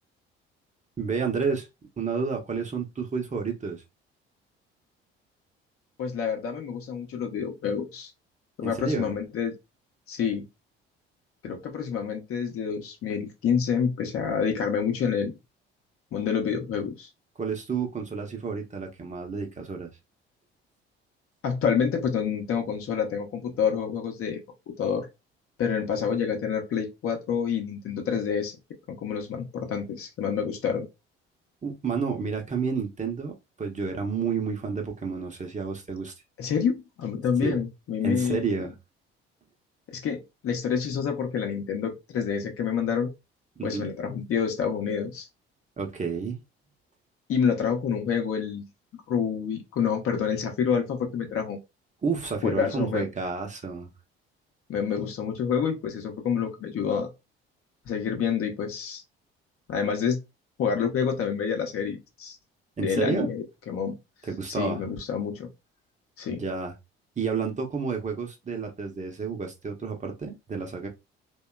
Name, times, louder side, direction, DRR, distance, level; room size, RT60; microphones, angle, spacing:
voice 1, 1.0-1.7 2.0-3.8 8.6-9.1 17.4-19.9 31.6-36.1 37.4-37.6 38.0-38.7 43.6-43.9 45.8-46.4 52.0-53.9 62.8-63.3 64.3-64.8 66.3-66.7 67.2-70.9, right 5 dB, 25° right, 0.7 m, -30 dB
voice 2, 6.0-8.1 8.6-9.5 10.1-10.5 11.4-15.3 16.1-17.1 21.4-24.4 24.7-25.1 25.6-28.6 28.9-30.9 36.4-38.4 39.9-43.1 43.6-45.3 47.3-48.6 49.1-51.6 52.4-53.1 54.7-57.1 57.9-59.0 59.7-60.2 60.6-62.4 62.8-63.9 64.5-65.5 66.2-66.4, left 7 dB, 45° left, 0.7 m, -28 dB
2.8 x 2.2 x 2.2 m
hypercardioid pair, 55°, 30 cm